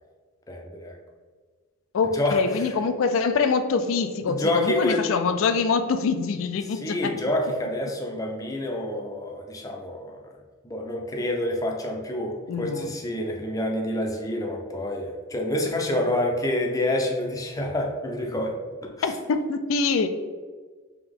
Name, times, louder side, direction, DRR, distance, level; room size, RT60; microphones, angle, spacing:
voice 1, 0.5-1.0 2.1-2.7 4.3-5.0 6.7-10.2 10.6-18.5 19.0-19.1, left 1 dB, 15° left, 1 dB, 0.5 m, -27 dB
voice 2, 1.9-7.1 12.5-12.9 19.0-20.1, left 5 dB, 70° left, 9 dB, 0.4 m, -24 dB
3.4 x 2.9 x 3.6 m, 1.5 s
head